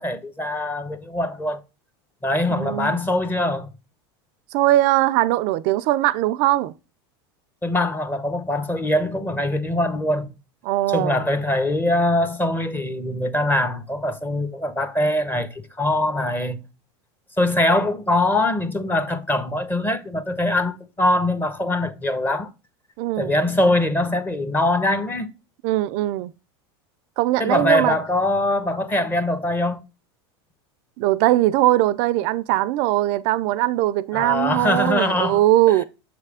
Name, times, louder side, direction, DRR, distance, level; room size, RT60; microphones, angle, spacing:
voice 1, 0.0-1.6 2.2-3.7 7.6-10.3 10.9-16.6 17.4-22.5 23.2-25.3 27.4-29.8 34.1-35.4 35.7-35.8, left 1 dB, 15° left, 0.8 m, -22 dB
voice 2, 2.5-3.0 4.5-6.7 10.6-11.2 23.0-23.3 25.6-26.3 27.2-28.0 31.0-35.8, right 15 dB, 55° right, 0.4 m, -20 dB
6.7 x 3.3 x 4.8 m
supercardioid pair, 110°, 13 cm